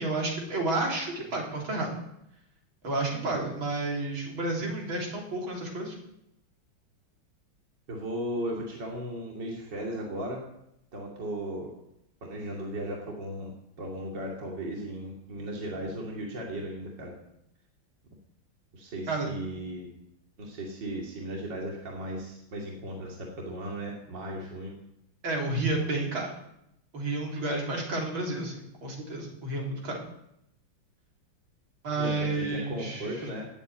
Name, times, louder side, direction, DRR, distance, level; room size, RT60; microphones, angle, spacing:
voice 1, 0.0-1.9 2.8-5.9 19.1-19.3 25.2-26.3 26.9-30.0 31.8-33.1, right 2 dB, 80° right, -1 dB, 4.5 m, -31 dB
voice 2, 7.9-10.4 10.9-11.7 12.2-13.5 13.8-17.1 18.7-19.9 20.4-24.7 32.0-33.5, right 1 dB, 60° right, -2 dB, 3.2 m, -36 dB
18.0 x 8.3 x 8.9 m, 0.80 s
omnidirectional pair, 2.2 m